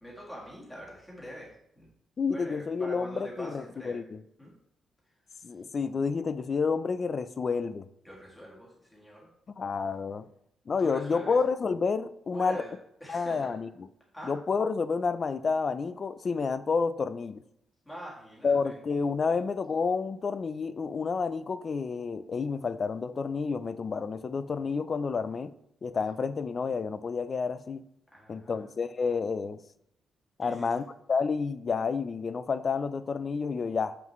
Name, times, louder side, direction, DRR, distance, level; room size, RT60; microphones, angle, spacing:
voice 1, 0.0-1.8 2.3-4.0 4.4-4.5 5.3-5.4 8.0-9.3 10.8-11.4 12.3-12.7 13.0-13.5 14.1-14.4 17.8-18.7 19.3-19.4 28.1-28.7 30.4-30.7, equal, 10° left, 1.6 m, -44 dB
voice 2, 2.2-4.2 5.4-7.9 9.6-10.3 10.7-12.6 13.1-13.7 14.2-17.4 18.4-25.5 25.8-27.9 28.3-29.6 30.4-34.0, left 5 dB, 35° left, 0.3 m, -30 dB
7.1 x 5.8 x 3.1 m
wide cardioid pair, 160°, 0 cm